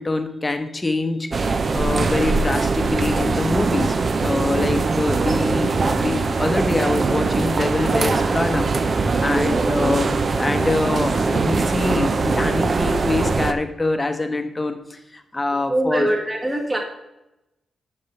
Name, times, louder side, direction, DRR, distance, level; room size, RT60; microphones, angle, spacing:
voice 1, 0.0-3.9 4.2-16.1, left 2 dB, 20° left, 7 dB, 0.9 m, -24 dB
sound 1, 1.3-13.5, right 4 dB, 40° right, 0.6 m, -21 dB
voice 2, 9.3-9.7 15.7-16.8, right 1 dB, 20° right, 0 dB, 1.8 m, -23 dB
8.2 x 5.5 x 5.9 m, 0.93 s
cardioid pair, 115°, 0 cm